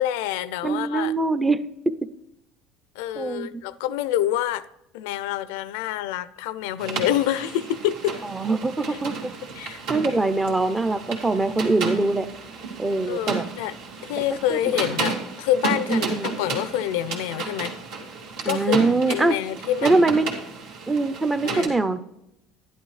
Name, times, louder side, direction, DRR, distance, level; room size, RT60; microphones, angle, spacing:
voice 1, 0.0-1.1 3.0-4.7 4.9-8.2 8.9-9.0 9.6-9.8 13.1-13.8 14.0-17.7 18.5-18.8 19.1-20.0 21.4-21.7, left 12 dB, 90° left, 0.4 m, -27 dB
voice 2, 0.6-1.6 1.9-2.0 3.1-3.6 8.2-9.3 9.9-12.3 12.8-13.4 14.5-14.8 15.9-16.4 18.4-19.4 19.8-20.3 20.9-22.0, right 3 dB, 10° right, 0.5 m, -23 dB
sound 1, 6.8-21.7, right 4 dB, 70° right, 2.3 m, -33 dB
11.0 x 11.0 x 3.2 m
cardioid pair, 140°, 0 cm